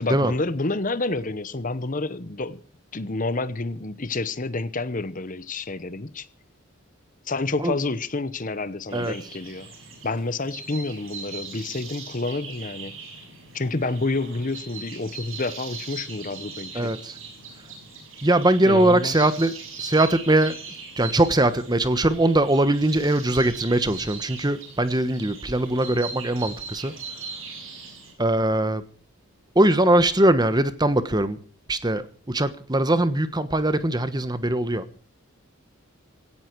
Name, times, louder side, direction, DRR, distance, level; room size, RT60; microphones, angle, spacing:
voice 1, 0.0-2.6 2.9-6.3 7.3-9.7 10.0-12.9 13.5-16.9 18.6-19.3, left 3 dB, 40° left, 1.0 m, -29 dB
sound 1, 8.9-28.1, right 4 dB, 70° right, 6.2 m, -40 dB
voice 2, 16.7-17.2 18.2-20.6 21.0-26.9 28.2-28.8 29.5-31.4 31.7-34.9, right 1 dB, 20° right, 1.2 m, -21 dB
17.5 x 15.5 x 4.7 m
head